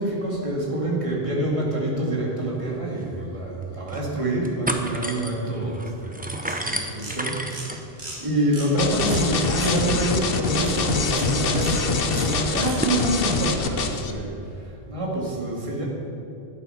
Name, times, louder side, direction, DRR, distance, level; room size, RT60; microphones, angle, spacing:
voice 1, 0.0-15.8, right 1 dB, 30° right, -3 dB, 2.2 m, -27 dB
sound 1, 2.6-2.7 3.0-3.1 3.6-4.1 4.4-13.0, right 1 dB, 10° right, 0.7 m, -34 dB
sound 2, 6.4-6.7 7.0-7.2 7.5-7.7 8.0-8.2 8.5-8.7 9.1-9.2 9.5-9.7 10.6-10.8 11.1-11.3 11.5-11.7 12.1-12.3 12.6-12.8, right 2 dB, 90° right, 2.4 m, -36 dB
sound 3, 8.8-14.1, left 4 dB, 65° left, 1.0 m, -24 dB
12.0 x 10.0 x 5.7 m, 2.8 s
omnidirectional pair, 1.0 m